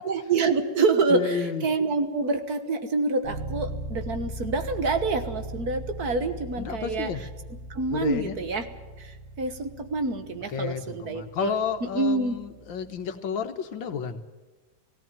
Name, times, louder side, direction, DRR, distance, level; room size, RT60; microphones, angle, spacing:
voice 1, 0.0-7.1 7.7-8.7 9.0-11.5 12.0-12.4, right 3 dB, 55° right, 8 dB, 1.8 m, -27 dB
voice 2, 1.1-1.7 6.6-7.2 7.9-8.4 10.5-14.2, left 6 dB, 80° left, 8 dB, 1.9 m, -31 dB
sound 1, 3.2-13.0, equal, 85° right, 7.8 m, -39 dB
17.5 x 17.0 x 9.1 m, 1.3 s
omnidirectional pair, 2.1 m